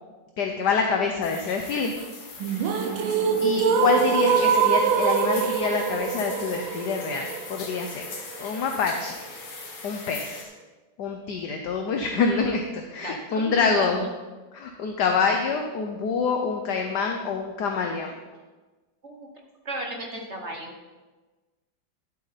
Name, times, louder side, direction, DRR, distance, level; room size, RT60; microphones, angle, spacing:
voice 1, 0.4-2.0 3.4-8.1 8.4-9.3 9.8-10.5 11.0-14.1 14.5-18.1, left 5 dB, 65° left, 3 dB, 1.3 m, -26 dB
sound 1, 1.2-10.4, left 4 dB, 80° left, 2.3 m, -40 dB
sound 2, 2.4-8.4, right 7 dB, 85° right, 1.6 m, -24 dB
voice 2, 13.0-14.1 19.0-19.3 19.6-20.7, right 1 dB, 45° right, 2 dB, 1.0 m, -35 dB
11.5 x 7.8 x 4.1 m, 1.2 s
omnidirectional pair, 2.2 m